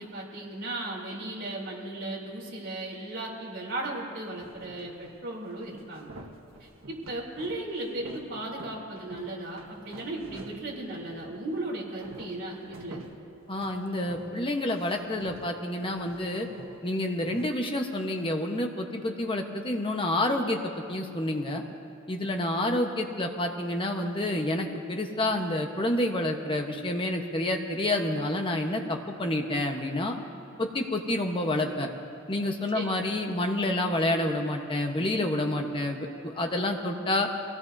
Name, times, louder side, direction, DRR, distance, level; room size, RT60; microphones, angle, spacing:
voice 1, 0.0-6.1 6.6-13.1 32.7-32.9, right 2 dB, 65° right, -3 dB, 3.4 m, -36 dB
sound 1, 4.4-5.2 5.5-11.5 11.8-14.5 14.7-17.4, right 2 dB, 90° right, 1.3 m, -48 dB
voice 2, 13.5-16.5 16.8-21.6 22.1-30.2 30.6-31.9 32.3-37.3, left 1 dB, 25° left, 3 dB, 1.0 m, -28 dB
23.0 x 17.0 x 2.7 m, 2.6 s
head